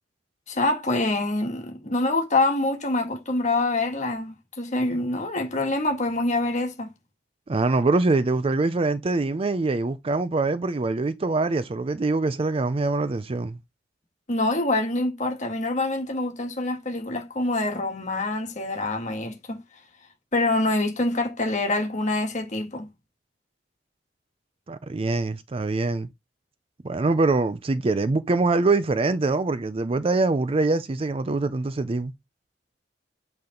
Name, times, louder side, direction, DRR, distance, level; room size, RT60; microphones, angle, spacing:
voice 1, 0.5-6.9 14.3-19.6 20.3-22.9, left 2 dB, 40° left, 1.5 m, -25 dB
voice 2, 7.5-13.6 24.7-26.1 26.8-32.1, right 3 dB, 30° right, 0.4 m, -24 dB
8.1 x 3.4 x 3.8 m
head